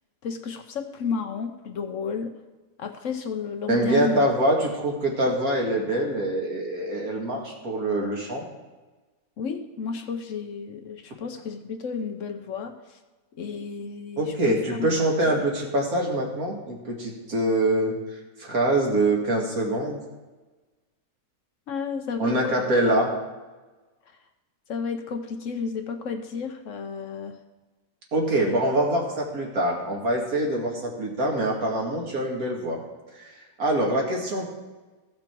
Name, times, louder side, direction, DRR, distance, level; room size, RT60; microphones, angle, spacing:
voice 1, 0.2-2.3 2.8-4.2 9.4-13.0 13.3-14.9 21.7-22.6 24.7-27.4 28.4-28.5, left 5 dB, 65° left, 6 dB, 1.0 m, -32 dB
voice 2, 3.7-8.5 14.2-17.9 18.4-20.0 22.2-23.1 28.1-32.8 33.2-34.4, right 1 dB, 70° right, -1 dB, 2.3 m, -24 dB
14.5 x 6.1 x 4.5 m, 1.2 s
omnidirectional pair, 1.6 m